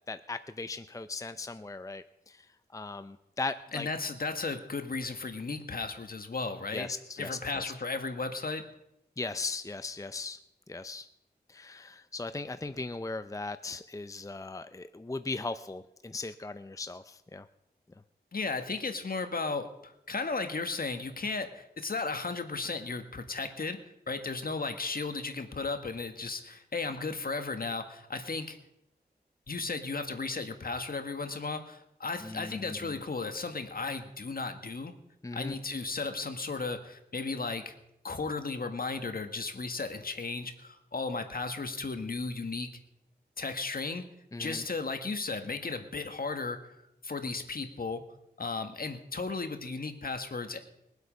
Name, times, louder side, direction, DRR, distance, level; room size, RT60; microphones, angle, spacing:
voice 1, 0.1-2.5 2.7-3.9 6.7-7.6 9.2-10.4 10.7-11.1 11.5-17.5 32.2-33.0 35.2-35.6 44.3-44.6, left 3 dB, 20° left, 11 dB, 0.6 m, -38 dB
voice 2, 3.7-6.9 7.2-8.6 18.3-23.8 24.1-28.6 29.5-34.9 35.3-37.7 38.0-42.7 43.4-44.0 44.4-46.7 47.0-48.0 48.4-50.6, left 3 dB, 60° left, 7 dB, 1.5 m, -35 dB
21.5 x 8.2 x 5.2 m, 0.82 s
cardioid pair, 50°, 17 cm